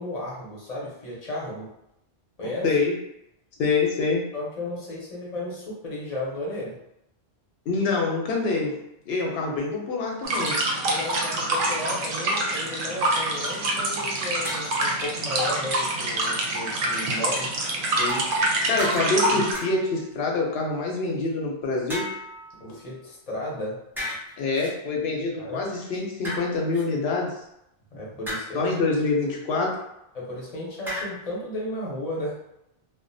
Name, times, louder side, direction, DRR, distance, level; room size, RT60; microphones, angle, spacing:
voice 1, 0.0-1.7 2.4-2.6 4.3-6.8 10.8-17.5 22.6-23.8 25.4-25.6 27.9-28.7 30.1-32.4, left 1 dB, 40° left, -5 dB, 0.7 m, -34 dB
voice 2, 2.6-3.0 3.6-4.3 7.7-8.8 9.1-10.6 18.0-18.4 18.7-22.0 22.7-22.8 24.4-27.3 28.5-29.8, left 3 dB, 80° left, -1 dB, 0.9 m, -26 dB
sound 1, 10.2-19.5, right 1 dB, 65° right, 0.7 m, -26 dB
sound 2, 14.4-14.9 18.1-18.5 18.8-19.2 19.5-20.0 21.9-23.0 24.0-24.7 26.2-26.8 28.3-28.7 30.9-31.1, left 1 dB, 5° right, 0.4 m, -35 dB
2.4 x 2.0 x 2.6 m, 0.81 s
omnidirectional pair, 1.1 m